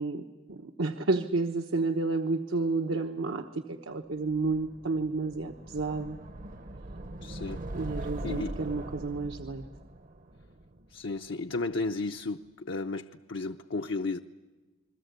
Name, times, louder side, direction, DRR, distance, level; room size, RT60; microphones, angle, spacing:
voice 1, 0.0-6.2 7.7-9.6, right 3 dB, 75° right, 5 dB, 1.1 m, -31 dB
sound 1, 4.3-11.3, right 1 dB, 45° right, 0.9 m, -41 dB
voice 2, 7.2-7.6 8.2-8.6 10.9-14.2, left 3 dB, 65° left, 5 dB, 0.7 m, -33 dB
29.0 x 21.5 x 8.2 m, 1.3 s
head